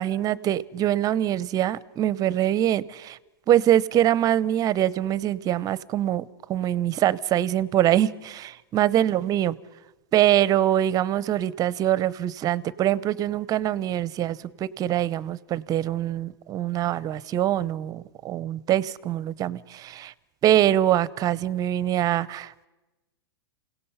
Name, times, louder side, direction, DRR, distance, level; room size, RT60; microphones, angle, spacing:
voice 1, 0.0-3.2 3.5-6.2 6.5-9.6 10.1-20.1 20.4-22.7, right 12 dB, 30° right, 20 dB, 0.6 m, -24 dB
28.0 x 17.0 x 5.6 m, 1.0 s
hypercardioid pair, 120°, 13 cm